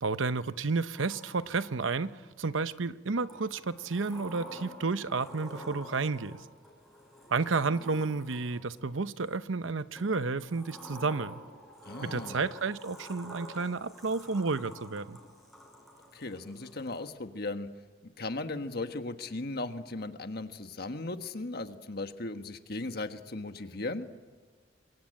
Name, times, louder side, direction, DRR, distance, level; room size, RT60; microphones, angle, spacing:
voice 1, 0.0-6.4 7.3-11.3 12.0-15.2, right 4 dB, 90° right, 13 dB, 0.8 m, -31 dB
Sliding door, 0.9-2.3 3.3-8.8 9.9-17.1, equal, ahead, 5.8 m, -49 dB
voice 2, 11.9-12.4 16.1-17.7 18.2-24.0, left 2 dB, 55° left, 8 dB, 1.5 m, -37 dB
27.0 x 23.5 x 8.9 m, 1.4 s
head